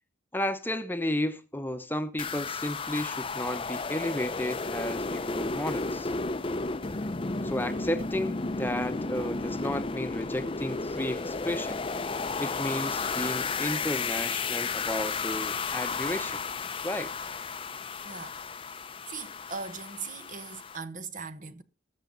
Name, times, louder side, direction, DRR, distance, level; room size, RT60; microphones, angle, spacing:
voice 1, 0.3-6.1 7.4-11.8 12.4-16.4 16.8-17.1, left 1 dB, 10° left, 1.0 m, -33 dB
sound 1, 2.2-20.8, left 4 dB, 30° left, 0.7 m, -33 dB
voice 2, 18.0-18.4 18.7-21.6, right 5 dB, 45° right, 1.1 m, -40 dB
19.0 x 7.3 x 4.0 m
head